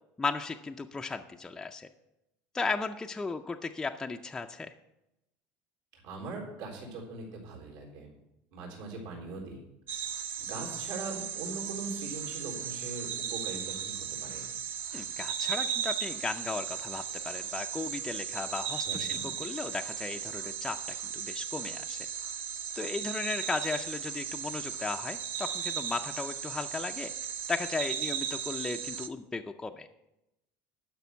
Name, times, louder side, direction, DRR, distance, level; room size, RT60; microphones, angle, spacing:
voice 1, 0.2-1.9 2.5-4.7 14.9-20.8 21.1-22.0 22.8-27.1 27.5-29.9, left 4 dB, 10° left, 4 dB, 0.4 m, -36 dB
voice 2, 5.9-8.1 8.5-9.6 10.4-14.4 18.8-19.3, right 3 dB, 75° right, -1 dB, 3.9 m, -41 dB
sound 1, 9.9-29.1, right 8 dB, 40° right, 0.7 m, -36 dB
11.5 x 6.0 x 8.2 m, 0.89 s
cardioid pair, 160°, 5 cm